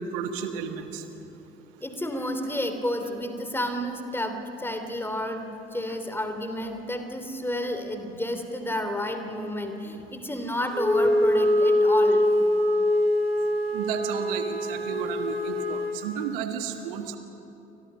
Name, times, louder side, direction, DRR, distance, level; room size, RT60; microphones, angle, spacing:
voice 1, 0.1-1.0 13.7-17.2, right 7 dB, 65° right, 7 dB, 1.8 m, -32 dB
voice 2, 1.8-12.3, left 1 dB, 5° left, 6 dB, 3.0 m, -31 dB
Wind instrument woodwind instrument, 10.7-16.0, left 1 dB, 80° right, 2.1 m, -23 dB
29.5 x 24.5 x 5.6 m, 2.9 s
figure-of-eight pair, 55°, 30 cm